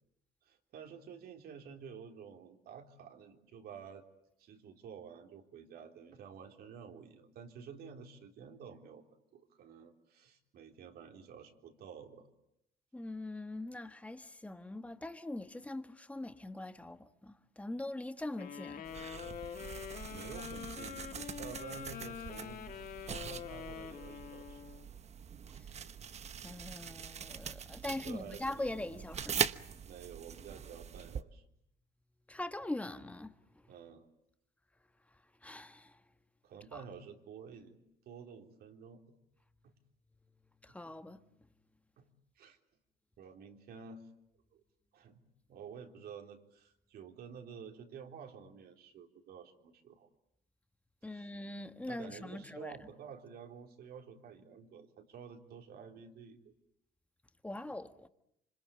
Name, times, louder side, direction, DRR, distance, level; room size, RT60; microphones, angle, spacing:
voice 1, 0.5-4.0 4.4-9.0 9.3-12.3 20.1-24.6 27.8-28.7 29.8-31.4 33.7-34.0 36.4-37.8 38.1-39.1 39.6-39.7 40.7-40.8 42.0-42.1 42.4-42.6 43.2-44.1 44.5-44.6 44.9-45.2 45.5-50.1 51.1-51.3 51.9-56.5, right 6 dB, 65° right, 3.7 m, -51 dB
voice 2, 12.9-18.9 25.6-25.8 26.4-29.5 32.3-33.3 35.4-36.0 40.6-41.2 51.0-52.8 57.4-58.1, left 2 dB, 10° left, 1.5 m, -42 dB
sound 1, 18.4-24.9, left 8 dB, 55° left, 2.0 m, -45 dB
sound 2, 18.8-31.2, right 7 dB, 40° right, 1.1 m, -42 dB
26.5 x 25.5 x 8.7 m
cardioid pair, 110°, 17 cm